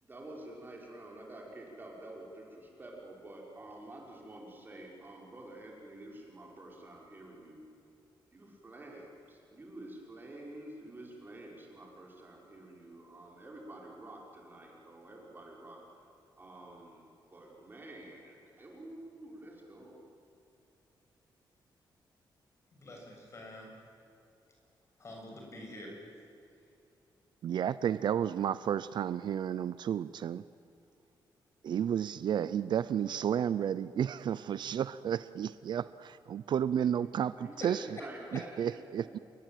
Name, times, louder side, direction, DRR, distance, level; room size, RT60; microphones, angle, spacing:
voice 1, 0.0-7.6 8.3-15.8 16.4-17.0 17.3-20.0 37.0-38.7, right 1 dB, 25° right, -1 dB, 5.7 m, -49 dB
voice 2, 22.7-23.7 25.0-25.9 37.6-38.0 38.3-38.4, left 1 dB, 35° left, 0 dB, 7.5 m, -45 dB
voice 3, 27.4-30.4 31.6-37.8 38.6-39.2, right 9 dB, 65° right, 16 dB, 0.6 m, -32 dB
29.0 x 22.5 x 9.2 m, 2.6 s
wide cardioid pair, 155°, 8 cm